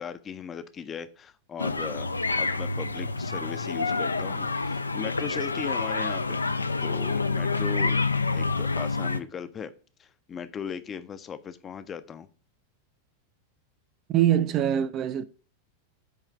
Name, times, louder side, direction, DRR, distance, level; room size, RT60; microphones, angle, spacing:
voice 1, 0.0-6.4 6.8-8.0 8.3-9.7 10.0-12.3, left 7 dB, 25° left, 0.5 m, -38 dB
sound 1, 1.6-9.2, left 3 dB, 80° left, 0.3 m, -28 dB
voice 2, 14.1-15.2, right 11 dB, 35° right, 0.4 m, -23 dB
8.2 x 3.2 x 4.6 m
figure-of-eight pair, 90°, 0 cm